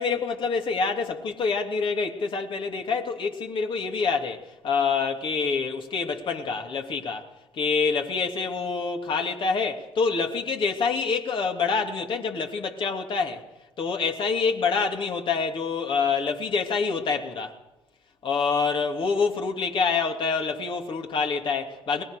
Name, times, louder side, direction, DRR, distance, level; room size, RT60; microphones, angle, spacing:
voice 1, 0.0-7.3 7.5-13.4 13.8-17.5 18.2-22.0, left 5 dB, 50° left, 3.1 m, -26 dB
22.0 x 20.5 x 6.7 m
hypercardioid pair, 50°, 11 cm